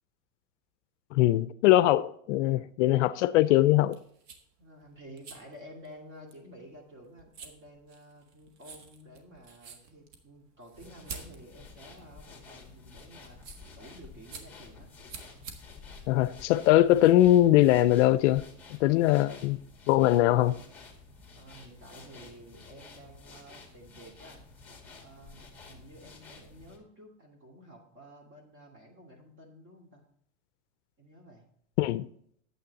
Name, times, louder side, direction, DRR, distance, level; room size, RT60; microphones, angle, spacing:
voice 1, 1.1-4.0 16.1-19.6 19.9-20.6 31.8-32.1, left 14 dB, 65° left, 0.5 m, -22 dB
sound 1, 3.8-17.0, right 5 dB, 70° right, 1.6 m, -50 dB
voice 2, 4.6-13.4 13.7-14.9 21.4-24.4 25.0-30.0 31.0-31.5, equal, 30° right, 2.3 m, -51 dB
sound 2, 10.7-26.8, left 4 dB, 5° left, 2.0 m, -51 dB
9.3 x 7.9 x 4.0 m
supercardioid pair, 135°, 39 cm